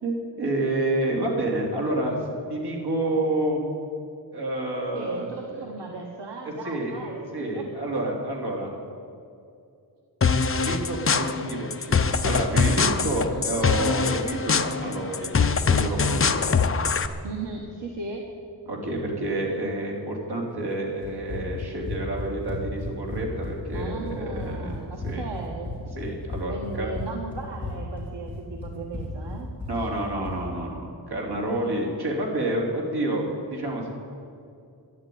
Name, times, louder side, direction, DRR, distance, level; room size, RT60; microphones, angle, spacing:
voice 1, 0.0-2.2 2.5-3.6 4.3-5.6 6.4-7.0 7.3-8.7 10.6-15.3 15.7-16.4 18.7-24.7 25.0-25.2 25.9-26.9 29.7-33.9, right 1 dB, 65° right, -1 dB, 3.4 m, -29 dB
voice 2, 4.9-7.6 12.9-13.4 17.2-18.2 23.7-25.8 26.5-29.5 31.6-31.7, right 4 dB, 90° right, 0 dB, 1.5 m, -37 dB
sound 1, 10.2-17.1, left 5 dB, 35° left, 0.6 m, -23 dB
Run, 21.0-30.4, left 2 dB, 5° right, 3.6 m, -35 dB
13.0 x 11.0 x 9.4 m, 2.5 s
wide cardioid pair, 180°, 41 cm